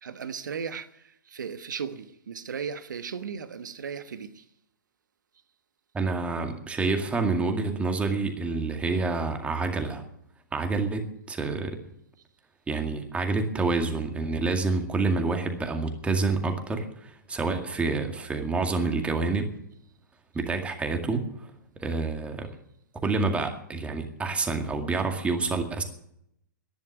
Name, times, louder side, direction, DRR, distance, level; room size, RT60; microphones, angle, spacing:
voice 1, 0.0-4.4, right 6 dB, 70° right, 1.3 m, -36 dB
voice 2, 5.9-10.0 10.5-11.7 12.7-19.5 20.3-21.5 21.8-22.5 23.0-25.8, right 3 dB, 10° right, 2.1 m, -28 dB
11.5 x 10.5 x 9.5 m
figure-of-eight pair, 115°, 11 cm